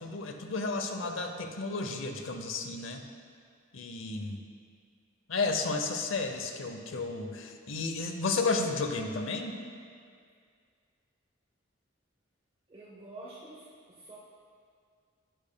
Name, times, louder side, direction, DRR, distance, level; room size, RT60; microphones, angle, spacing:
voice 1, 0.0-3.0 3.7-4.4 5.3-9.6, left 3 dB, 90° left, 5 dB, 0.7 m, -32 dB
voice 2, 12.7-13.7 14.0-14.2, right 2 dB, 30° right, -6 dB, 0.8 m, -47 dB
10.0 x 8.6 x 2.2 m, 2.2 s
head